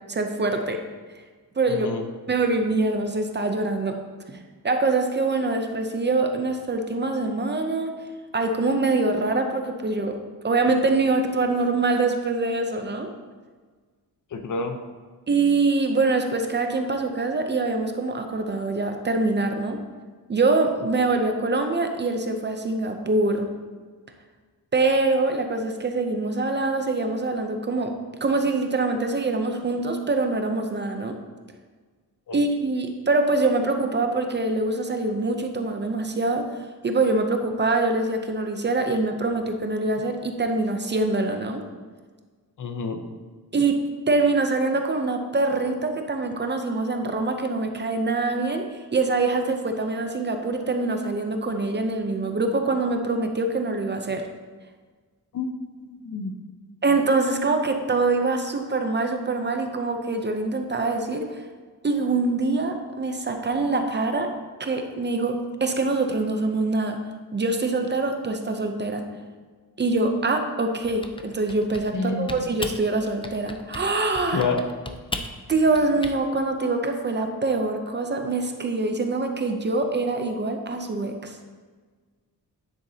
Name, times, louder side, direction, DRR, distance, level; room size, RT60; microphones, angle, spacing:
voice 1, 0.1-0.8 1.6-1.9 2.3-4.0 4.3-4.4 4.6-7.9 8.3-10.2 10.4-13.1 15.3-19.8 20.3-23.5 24.7-28.0 28.2-31.2 32.3-36.5 36.8-41.6 43.5-54.3 56.8-61.4 61.8-64.3 64.6-67.0 67.3-69.0 69.8-74.5 75.5-81.4, right 3 dB, 30° right, 5 dB, 0.6 m, -24 dB
voice 2, 1.7-2.0 14.3-14.8 32.3-32.4 42.6-43.0 55.3-55.5 55.8-56.3 71.9-72.4 74.3-74.6, left 4 dB, 55° left, 6 dB, 0.8 m, -28 dB
Typing, 70.8-72.0 72.3-72.8 73.2-73.9 74.1-76.2, left 2 dB, 15° left, 0.4 m, -36 dB
9.7 x 8.1 x 2.8 m, 1.5 s
wide cardioid pair, 160°, 36 cm